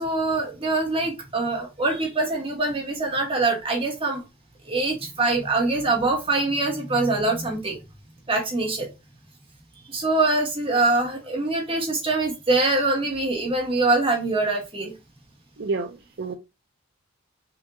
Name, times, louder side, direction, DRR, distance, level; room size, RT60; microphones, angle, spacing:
voice 1, 0.0-4.2 4.7-7.8 8.3-8.9 9.9-14.9, right 2 dB, 25° right, 1.4 m, -24 dB
voice 2, 15.6-16.3, right 3 dB, 55° right, 0.4 m, -29 dB
5.7 x 2.6 x 2.7 m
head